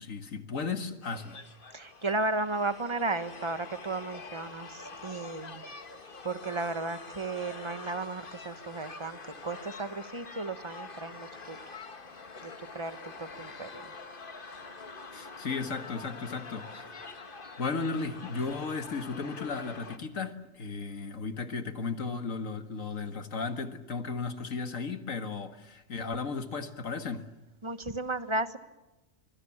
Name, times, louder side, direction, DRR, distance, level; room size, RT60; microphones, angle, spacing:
voice 1, 0.0-1.4 15.1-16.9 17.6-27.3, left 4 dB, 80° left, 2.1 m, -35 dB
sound 1, 1.0-20.0, left 4 dB, 40° left, 1.7 m, -46 dB
voice 2, 1.7-5.6 6.2-11.6 12.4-13.9 27.6-28.6, right 2 dB, 25° right, 1.3 m, -34 dB
25.0 x 23.5 x 7.3 m
omnidirectional pair, 1.3 m